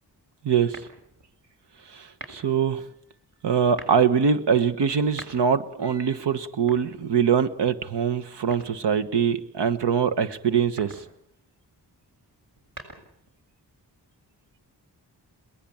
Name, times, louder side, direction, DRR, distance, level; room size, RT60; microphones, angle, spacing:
voice 1, 0.4-0.8 1.9-2.8 3.4-11.0, right 7 dB, 85° right, 11 dB, 1.4 m, -23 dB
sound 1, 0.7-1.3 2.1-2.6 3.6-4.1 4.9-5.7 6.5-7.5 8.5-9.1 10.6-11.1 12.4-13.3, right 2 dB, 55° right, 6.9 m, -44 dB
22.5 x 19.0 x 8.7 m, 0.72 s
cardioid pair, 55°, 40 cm